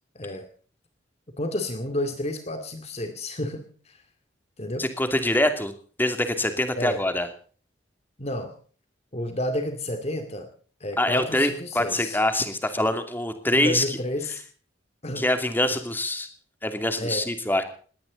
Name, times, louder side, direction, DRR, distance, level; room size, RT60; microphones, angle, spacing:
voice 1, 1.4-4.0 4.6-4.9 6.8-7.0 8.2-8.5 9.1-10.5 10.8-12.2 12.8-12.9 13.5-14.4 15.0-15.3 17.0-17.2, left 1 dB, 35° left, 7 dB, 2.3 m, -30 dB
voice 2, 4.8-5.7 6.0-7.3 11.0-13.8 15.2-16.3 16.6-17.6, left 1 dB, 10° left, 8 dB, 2.6 m, -24 dB
20.0 x 17.5 x 4.0 m, 0.43 s
head